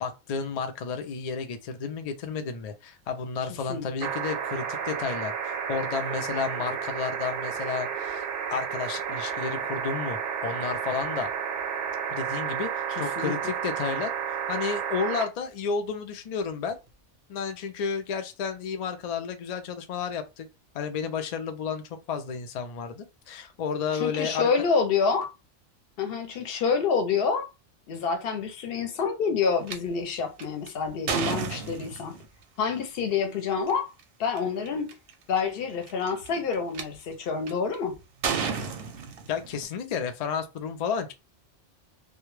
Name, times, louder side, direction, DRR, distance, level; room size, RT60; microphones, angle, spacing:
voice 1, 0.0-11.3 12.1-14.1 14.5-16.8 17.3-20.5 20.7-24.5 39.3-41.1, left 6 dB, 75° left, 0.3 m, -32 dB
sound 1, 4.0-15.2 16.7-16.8, right 7 dB, 90° right, 1.0 m, -31 dB
voice 2, 13.0-13.3 23.9-25.3 26.0-27.5 27.9-32.2 32.6-33.9 34.2-34.9 35.3-37.9, left 5 dB, 60° left, 0.8 m, -27 dB
sound 2, 29.7-29.8 30.4-32.3 33.5-33.7 34.4-34.5 34.7-35.1 35.8-36.8 37.5-37.8 38.2-39.7, right 6 dB, 60° right, 0.7 m, -31 dB
2.2 x 2.1 x 3.0 m
omnidirectional pair, 1.2 m